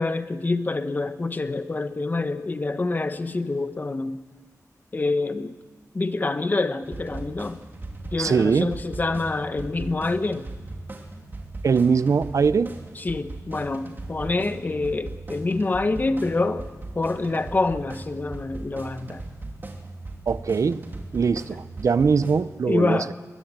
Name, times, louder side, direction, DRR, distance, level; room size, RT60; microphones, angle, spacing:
voice 1, 0.0-4.2 4.9-5.5 5.9-7.6 8.1-10.5 13.0-16.7 16.9-19.2 22.7-23.1, left 3 dB, 30° left, 10 dB, 1.1 m, -26 dB
sound 1, 6.8-22.4, right 2 dB, 35° right, 2.9 m, -38 dB
voice 2, 8.2-8.7 11.6-12.7 20.3-20.8 21.1-23.0, right 5 dB, 60° right, 15 dB, 0.7 m, -21 dB
22.0 x 20.0 x 8.9 m, 1.3 s
wide cardioid pair, 145°, 6 cm